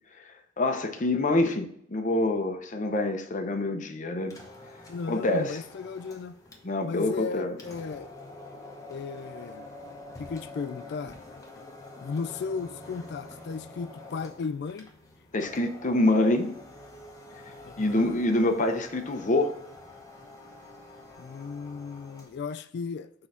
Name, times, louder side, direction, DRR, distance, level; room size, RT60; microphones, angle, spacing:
voice 1, 0.6-4.3 5.1-5.6 6.6-7.6 15.3-16.6 17.8-19.5, left 2 dB, 40° left, 0.7 m, -26 dB
sound 1, 4.2-22.4, left 2 dB, 15° left, 1.0 m, -47 dB
voice 2, 4.9-6.4 6.8-8.1 8.9-9.7 10.2-11.2 12.0-14.9 17.6-18.2 21.2-23.1, left 5 dB, 55° left, 0.3 m, -35 dB
6.1 x 3.9 x 5.6 m
head